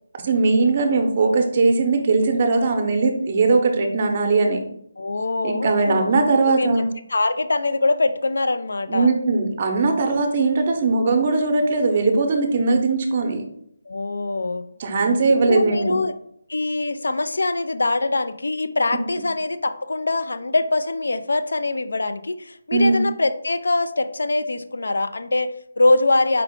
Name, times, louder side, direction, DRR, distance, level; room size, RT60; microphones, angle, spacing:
voice 1, 0.2-4.6 5.4-6.8 8.9-13.4 14.8-15.9 22.7-23.0, right 3 dB, 35° right, 4 dB, 0.6 m, -19 dB
voice 2, 5.0-6.0 6.6-9.1 10.0-10.2 13.9-14.6 15.5-16.1 16.5-26.4, left 2 dB, 85° left, 11 dB, 0.3 m, -23 dB
4.6 x 2.4 x 3.5 m, 0.72 s
hypercardioid pair, 165°, 0 cm